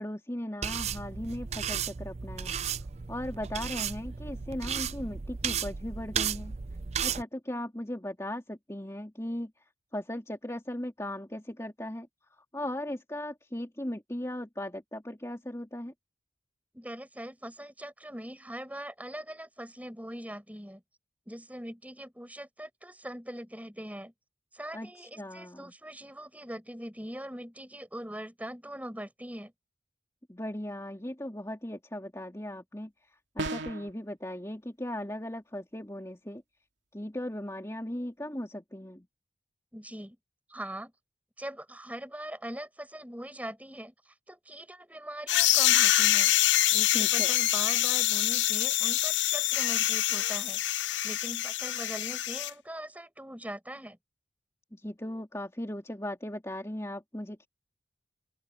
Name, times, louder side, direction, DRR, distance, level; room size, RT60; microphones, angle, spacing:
voice 1, 0.0-2.5 3.1-6.6 7.0-9.5 9.9-12.1 12.4-15.9 24.7-25.7 30.3-32.9 33.3-36.4 36.9-39.1 46.9-47.3 54.7-57.5, left 1 dB, 15° left, 2.9 m, -37 dB
sound 1, 0.6-7.2, right 7 dB, 35° right, 0.5 m, -34 dB
voice 2, 16.7-20.8 21.3-24.1 24.5-29.5 39.7-40.2 40.5-40.9 41.4-46.3 46.7-50.6 51.0-54.0, right 1 dB, 10° right, 7.7 m, -41 dB
sound 2, 33.4-33.9, right 2 dB, 85° right, 2.5 m, -34 dB
sound 3, 45.3-52.5, left 14 dB, 85° left, 0.6 m, -25 dB
open air
head